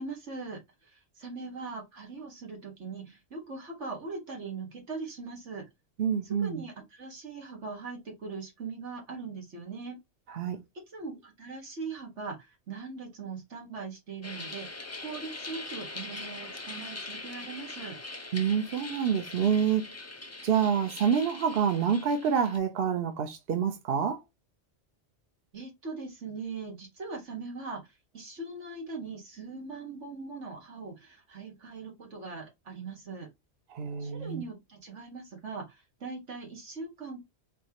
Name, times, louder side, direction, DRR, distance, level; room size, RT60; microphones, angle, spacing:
voice 1, 0.0-5.6 6.2-10.0 10.9-18.0 25.5-27.8 28.1-33.3 34.0-37.2, right 4 dB, 90° right, 2.0 m, -40 dB
voice 2, 6.0-6.6 10.3-10.6 18.3-19.8 20.4-24.2 33.7-34.4, right 7 dB, 60° right, 0.9 m, -27 dB
sound 1, 14.2-22.6, left 2 dB, 20° left, 0.5 m, -42 dB
4.5 x 3.2 x 2.9 m
omnidirectional pair, 1.2 m